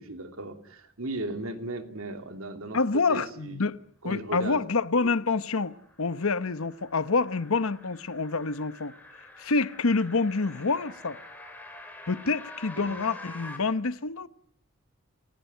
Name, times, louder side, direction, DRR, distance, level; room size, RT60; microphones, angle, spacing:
voice 1, 0.0-3.6 4.0-4.6 5.0-5.1 12.8-13.0, right 2 dB, 75° right, 2.6 m, -36 dB
voice 2, 2.7-3.8 4.0-8.9 9.4-11.2 12.1-14.3, left 4 dB, 80° left, 1.0 m, -27 dB
sound 1, 5.2-13.6, left 2 dB, 10° left, 3.8 m, -47 dB
29.5 x 16.0 x 9.2 m
head